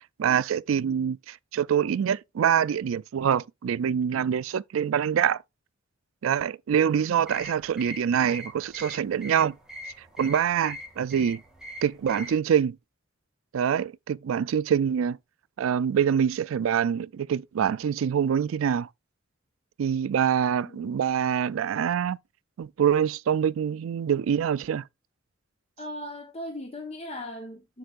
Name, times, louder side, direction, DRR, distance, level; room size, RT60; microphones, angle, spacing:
voice 1, 0.2-5.4 6.2-9.6 10.2-11.4 11.8-12.8 13.5-15.2 15.6-18.9 19.8-22.2 22.6-24.8, right 8 dB, 85° right, 0.4 m, -25 dB
sound 1, 7.2-12.4, left 1 dB, 5° right, 2.0 m, -42 dB
voice 2, 20.6-21.0 25.8-27.8, left 1 dB, 30° left, 1.0 m, -38 dB
7.9 x 6.6 x 2.5 m
head